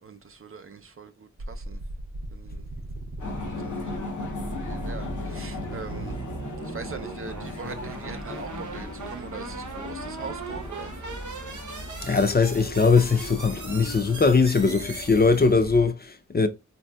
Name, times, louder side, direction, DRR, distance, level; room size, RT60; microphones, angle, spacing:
voice 1, 0.0-1.8 2.3-2.7 3.6-6.2 6.6-10.9, right 5 dB, 50° right, 0.5 m, -42 dB
sound 1, 1.4-15.8, right 3 dB, 80° right, 0.8 m, -39 dB
sound 2, 3.2-15.9, left 2 dB, 85° left, 0.7 m, -37 dB
voice 2, 12.0-16.5, left 4 dB, 35° left, 0.5 m, -21 dB
3.9 x 2.7 x 2.2 m
wide cardioid pair, 55°, 29 cm